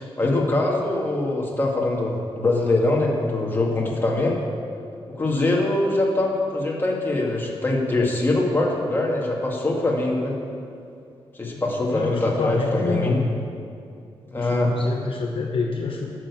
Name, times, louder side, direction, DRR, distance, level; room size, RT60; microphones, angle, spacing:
voice 1, 0.0-4.4 5.2-10.4 11.4-13.2 14.3-14.7, left 2 dB, 20° left, -2 dB, 1.9 m, -23 dB
voice 2, 11.9-13.3 14.3-16.2, left 4 dB, 55° left, 0 dB, 1.0 m, -27 dB
11.5 x 6.5 x 8.3 m, 2.4 s
wide cardioid pair, 150°, 10 cm